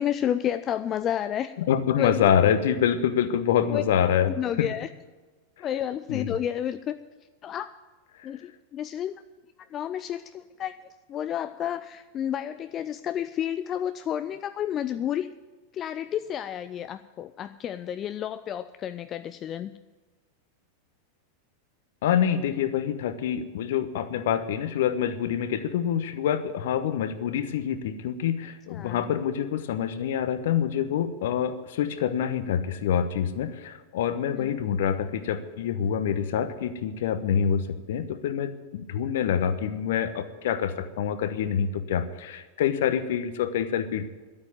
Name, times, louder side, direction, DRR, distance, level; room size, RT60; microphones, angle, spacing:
voice 1, 0.0-1.5 2.0-2.3 3.7-3.8 4.4-4.9 5.6-7.0 7.4-7.7 8.2-9.1 9.7-10.8 11.1-15.3 15.7-19.7 28.7-29.0 34.3-34.5, left 10 dB, 30° left, 11 dB, 0.4 m, -31 dB
voice 2, 1.6-4.7 5.6-5.7 6.1-6.4 22.0-44.0, left 8 dB, 55° left, 12 dB, 1.0 m, -26 dB
12.0 x 8.8 x 9.3 m, 1.3 s
figure-of-eight pair, 90°, 0 cm